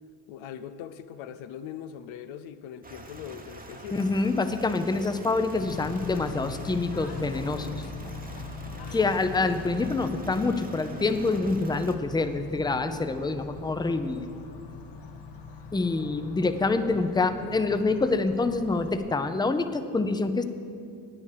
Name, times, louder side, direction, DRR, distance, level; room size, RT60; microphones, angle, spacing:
voice 1, 0.3-4.1, left 9 dB, 85° left, 11 dB, 0.6 m, -41 dB
sound 1, 2.8-12.0, right 2 dB, 20° right, 1.0 m, -46 dB
voice 2, 3.9-7.7 8.9-14.2 15.7-20.4, left 3 dB, 10° left, 9 dB, 0.6 m, -26 dB
Bird / Train, 5.6-19.0, left 4 dB, 60° left, 1.3 m, -41 dB
9.2 x 8.8 x 6.7 m, 2.5 s
supercardioid pair, 70°, 46 cm